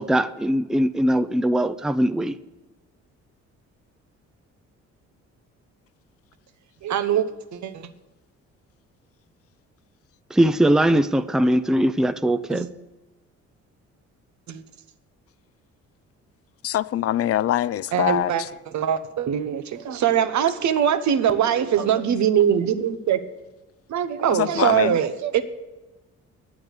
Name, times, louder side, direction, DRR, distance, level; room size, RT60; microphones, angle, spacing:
voice 1, 0.0-2.3 10.3-12.7, right 1 dB, ahead, 0.5 m, -21 dB
voice 2, 6.8-7.9 12.5-12.7 14.5-14.6 17.9-18.4 18.7-23.2 23.9-25.4, right 9 dB, 70° right, 1.0 m, -22 dB
voice 3, 16.6-18.5 24.3-25.0, left 12 dB, 50° left, 0.4 m, -24 dB
10.5 x 8.8 x 8.0 m
cardioid pair, 90°, 30 cm